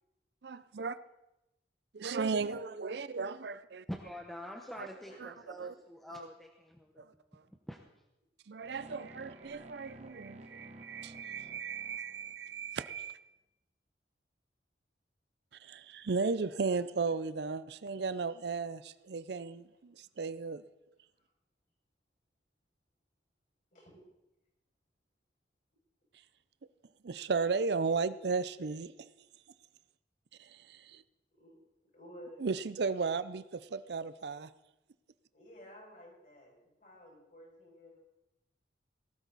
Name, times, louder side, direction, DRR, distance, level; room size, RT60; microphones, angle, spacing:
voice 1, 0.4-1.0 1.9-3.8 4.8-4.9 5.2-5.7 6.1-6.3 7.0-7.1 8.5-13.2 15.6-20.6 27.0-29.1 30.4-31.0 32.4-34.5, right 4 dB, 65° right, 14 dB, 0.5 m, -35 dB
voice 2, 3.9-7.1 7.7-7.8, equal, ahead, 2 dB, 0.9 m, -45 dB
sound 1, 8.6-12.7, right 1 dB, 35° right, 1.1 m, -53 dB
voice 3, 31.9-32.4 35.3-36.5 36.8-38.0, equal, 45° left, -2 dB, 6.5 m, -53 dB
19.0 x 13.0 x 4.0 m, 0.93 s
head